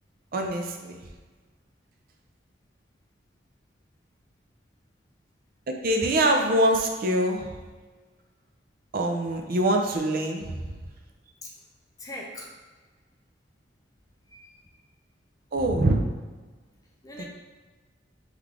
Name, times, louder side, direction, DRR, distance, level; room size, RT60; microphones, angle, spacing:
voice 1, 0.3-1.0 5.7-7.5 8.9-10.8 15.5-16.0 17.2-17.3, right 1 dB, 50° right, 3 dB, 0.5 m, -24 dB
voice 2, 12.0-12.5 14.3-14.8 17.0-17.2, left 1 dB, 20° left, -1 dB, 0.6 m, -42 dB
3.7 x 3.2 x 3.6 m, 1.3 s
head